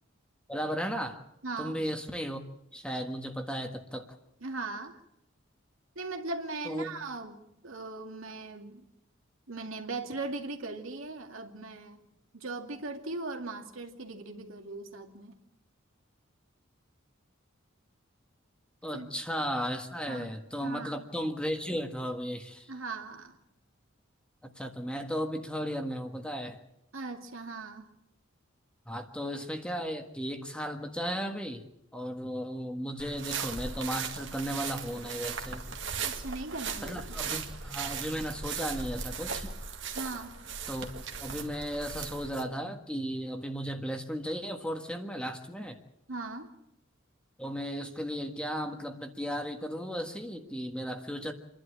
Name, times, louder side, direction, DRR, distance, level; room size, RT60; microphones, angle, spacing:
voice 1, 0.5-1.2 1.6-2.5 2.7-4.1 6.6-7.0 18.8-22.7 24.4-26.6 28.9-31.6 31.9-35.6 36.8-39.5 40.7-40.9 41.2-45.8 47.4-51.3, equal, 5° left, 4 dB, 1.5 m, -35 dB
voice 2, 1.4-1.8 4.4-5.0 6.0-8.9 9.5-12.0 12.3-15.4 18.9-19.1 20.1-20.3 20.6-21.0 22.7-23.4 26.9-27.9 36.0-37.0 39.9-40.4 46.1-46.5, right 3 dB, 80° right, 3 dB, 2.3 m, -39 dB
sound 1, 33.0-42.4, right 6 dB, 60° right, 2.0 m, -38 dB
28.0 x 11.5 x 8.8 m, 0.84 s
head